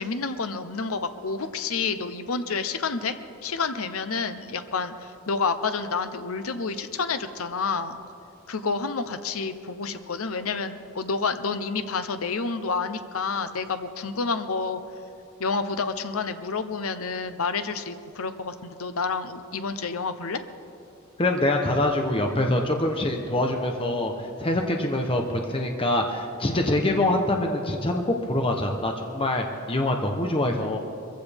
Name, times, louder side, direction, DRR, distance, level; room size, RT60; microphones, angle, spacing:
voice 1, 0.0-8.0 8.5-14.8 15.4-20.4, left 4 dB, 75° left, 10 dB, 0.8 m, -29 dB
voice 2, 21.2-30.8, left 1 dB, 25° left, 3 dB, 0.9 m, -25 dB
22.5 x 15.5 x 3.5 m, 2.5 s
head